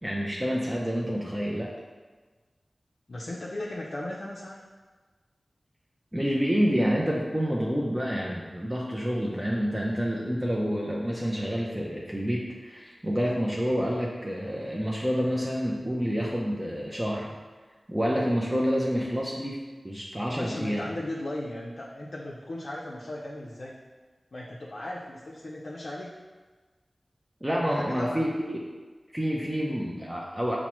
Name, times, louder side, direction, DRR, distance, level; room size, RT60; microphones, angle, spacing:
voice 1, 0.0-1.7 6.1-17.3 17.9-19.6 19.8-20.9 27.4-28.6 29.1-30.6, equal, 15° right, -3 dB, 0.4 m, -28 dB
voice 2, 3.1-4.6 20.4-23.8 24.3-26.2 27.6-28.2, left 1 dB, 65° left, -4 dB, 0.4 m, -37 dB
5.7 x 2.0 x 2.9 m, 1.4 s
wide cardioid pair, 65°, 0 cm